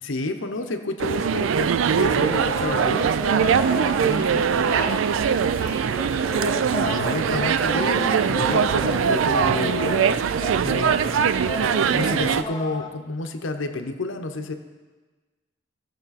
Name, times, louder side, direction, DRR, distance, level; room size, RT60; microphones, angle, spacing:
voice 1, 0.0-3.1 4.0-4.4 5.2-5.4 6.8-10.3 10.6-11.4 11.9-14.5, left 2 dB, 75° left, 6 dB, 0.8 m, -30 dB
sound 1, 1.0-12.4, right 7 dB, 80° right, 0.4 m, -22 dB
sound 2, 2.1-5.2 6.1-12.9, left 3 dB, 20° left, 0.6 m, -33 dB
voice 2, 4.1-5.0 5.6-6.5, equal, 35° right, -4 dB, 2.3 m, -35 dB
17.0 x 6.7 x 4.1 m, 1.3 s
head